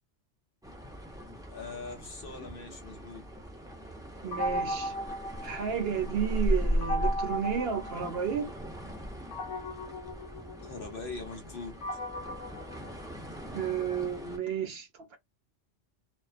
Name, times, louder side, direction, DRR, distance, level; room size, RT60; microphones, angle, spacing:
sound 1, 0.6-14.4, equal, 5° right, 0.4 m, -37 dB
voice 1, 1.5-3.2 10.6-11.7, left 4 dB, 55° left, 0.8 m, -41 dB
voice 2, 4.2-4.9 5.4-8.5 13.5-15.2, right 7 dB, 60° right, 0.8 m, -32 dB
sound 2, 4.3-6.1 6.8-8.6 9.3-13.6, equal, 85° left, 0.9 m, -37 dB
2.4 x 2.2 x 2.4 m
omnidirectional pair, 1.2 m